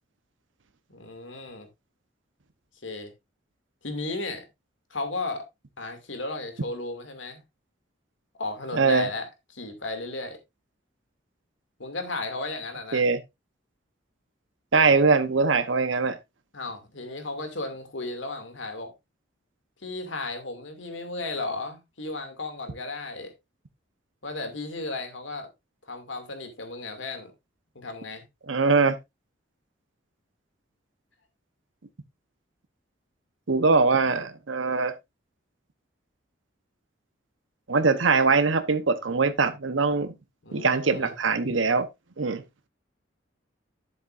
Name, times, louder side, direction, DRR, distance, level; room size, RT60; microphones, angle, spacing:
voice 1, 0.9-1.7 2.8-3.1 3.8-4.4 4.9-5.4 5.8-7.4 8.4-10.4 11.8-13.0 16.5-18.9 19.8-23.3 24.2-25.5 25.9-27.3 27.7-28.2 40.4-41.1, left 2 dB, 80° left, 2.5 m, -34 dB
voice 2, 8.7-9.1 12.9-13.2 14.7-16.2 28.5-28.9 33.5-34.9 37.7-40.1 40.5-41.9 42.2-42.4, right 4 dB, 90° right, 1.0 m, -22 dB
11.0 x 7.9 x 2.6 m
head